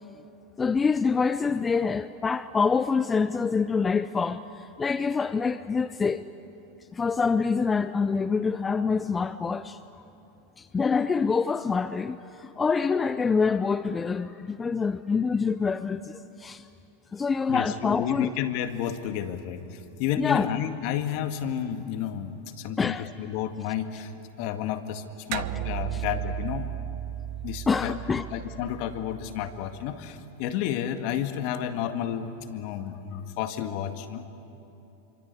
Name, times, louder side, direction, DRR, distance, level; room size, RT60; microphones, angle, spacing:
voice 1, 0.6-6.2 6.9-9.8 10.6-16.7 17.1-18.3 20.2-20.5 22.8-23.1 25.9-26.0 27.7-28.3, left 5 dB, 20° left, 0.6 m, -26 dB
voice 2, 17.5-24.1 24.4-25.0 25.3-26.7 27.4-34.2, left 10 dB, 55° left, 1.9 m, -31 dB
sound 1, 25.3-30.1, right 15 dB, 55° right, 0.7 m, -35 dB
27.5 x 25.0 x 8.4 m
hypercardioid pair, 100°, 0 cm